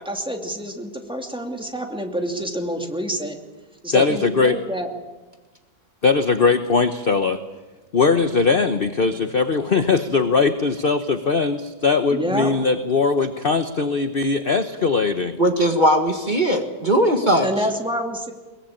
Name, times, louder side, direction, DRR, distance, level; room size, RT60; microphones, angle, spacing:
voice 1, 0.0-3.4 3.8-4.9 12.1-12.5 17.4-18.3, equal, 5° right, 3 dB, 2.4 m, -27 dB
voice 2, 3.9-4.5 6.0-7.4 7.9-15.4, left 4 dB, 40° left, 9 dB, 0.9 m, -20 dB
voice 3, 15.4-17.5, equal, 25° right, 4 dB, 1.8 m, -19 dB
22.5 x 21.5 x 8.8 m, 1.2 s
omnidirectional pair, 2.1 m